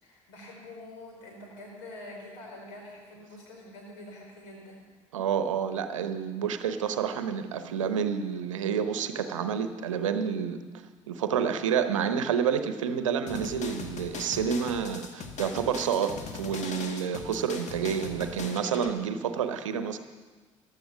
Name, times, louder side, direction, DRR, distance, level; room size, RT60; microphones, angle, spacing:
voice 1, 0.0-4.8, left 1 dB, 70° left, 0 dB, 4.8 m, -46 dB
voice 2, 5.1-10.6 11.1-20.0, right 7 dB, 80° right, 10 dB, 0.8 m, -29 dB
sound 1, 13.3-18.9, left 4 dB, 45° left, 1.8 m, -40 dB
15.0 x 11.5 x 6.1 m, 1.3 s
figure-of-eight pair, 55°, 16 cm